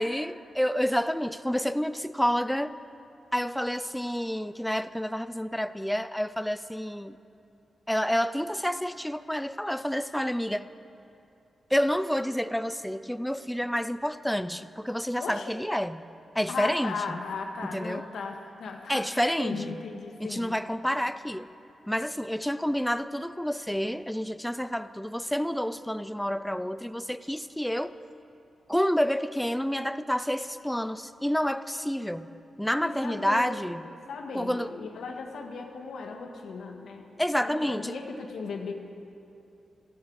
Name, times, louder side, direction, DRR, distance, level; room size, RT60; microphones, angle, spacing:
voice 1, 0.0-2.7 3.3-7.2 7.9-10.7 11.7-16.0 16.4-17.2 17.6-18.0 18.9-19.8 20.2-21.5 21.9-27.9 28.7-32.3 32.6-33.9 34.3-34.7 37.2-38.0, equal, 5° left, 14 dB, 0.4 m, -29 dB
voice 2, 15.2-15.6 16.5-20.6 32.8-37.1 37.4-38.7, left 4 dB, 85° left, 3 dB, 1.7 m, -37 dB
18.5 x 15.5 x 4.8 m, 2.7 s
wide cardioid pair, 160°, 0 cm